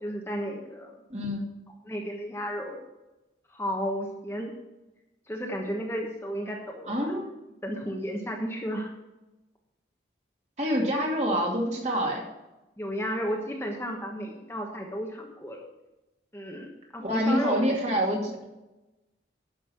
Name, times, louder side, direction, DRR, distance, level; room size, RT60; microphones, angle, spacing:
voice 1, 0.0-0.9 1.8-2.8 3.5-4.5 5.3-7.2 7.6-8.9 12.8-15.6 16.3-18.0, equal, 15° left, 0 dB, 1.2 m, -33 dB
voice 2, 1.1-1.4 6.9-7.3 10.6-12.2 17.0-18.3, equal, 35° right, -1 dB, 2.5 m, -26 dB
11.5 x 6.4 x 6.2 m, 1.0 s
head